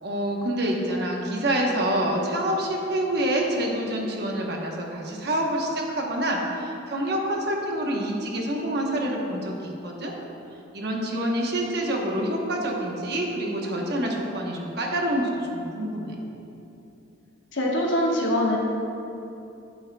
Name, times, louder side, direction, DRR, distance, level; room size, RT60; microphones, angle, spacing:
voice 1, 0.0-10.1 10.7-16.2, right 1 dB, 55° right, -1 dB, 1.0 m, -27 dB
voice 2, 17.5-18.6, left 1 dB, 70° left, -2 dB, 1.3 m, -23 dB
10.0 x 7.9 x 2.3 m, 2.8 s
head